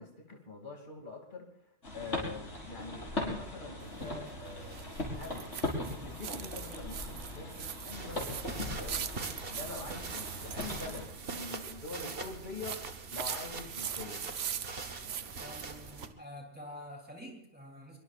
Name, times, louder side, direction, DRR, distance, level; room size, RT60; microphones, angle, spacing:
voice 1, 0.0-1.5 1.9-5.4 6.0-12.8 13.1-14.2, left 3 dB, 45° left, 1 dB, 2.7 m, -45 dB
sound 1, 1.8-11.1, left 1 dB, 80° left, 5.8 m, -39 dB
sound 2, 3.8-16.1, right 8 dB, 90° right, 1.2 m, -42 dB
sound 3, 7.9-16.1, right 3 dB, 55° right, 1.6 m, -43 dB
voice 2, 15.3-18.0, equal, 10° right, 0 dB, 3.3 m, -47 dB
24.5 x 23.5 x 2.5 m, 0.77 s
omnidirectional pair, 1.2 m